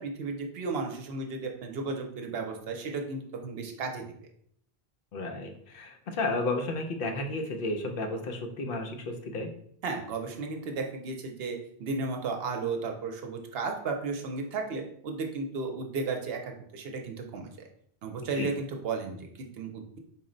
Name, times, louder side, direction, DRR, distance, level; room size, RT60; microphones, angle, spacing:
voice 1, 0.0-4.1 9.8-17.7 18.0-20.0, right 4 dB, 70° right, 3 dB, 0.8 m, -34 dB
voice 2, 5.1-9.5 18.3-18.5, left 2 dB, 65° left, 4 dB, 0.7 m, -32 dB
4.2 x 2.1 x 3.7 m, 0.65 s
omnidirectional pair, 1.1 m